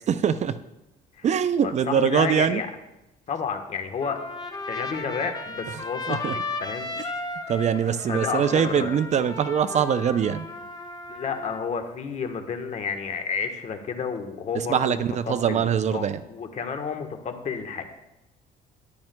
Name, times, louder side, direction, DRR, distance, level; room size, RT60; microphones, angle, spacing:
voice 1, 0.1-0.6 1.2-2.6 6.1-6.3 7.5-10.5 14.5-16.2, right 8 dB, 45° right, 12 dB, 0.5 m, -23 dB
voice 2, 1.6-2.7 3.3-4.2 4.7-6.9 7.2-7.4 8.1-8.9 11.1-15.6 15.9-17.8, left 6 dB, 45° left, 6 dB, 1.2 m, -31 dB
Trumpet, 4.0-11.7, left 3 dB, 25° left, 1.0 m, -35 dB
13.5 x 10.5 x 2.2 m, 0.93 s
cardioid pair, 110°, 17 cm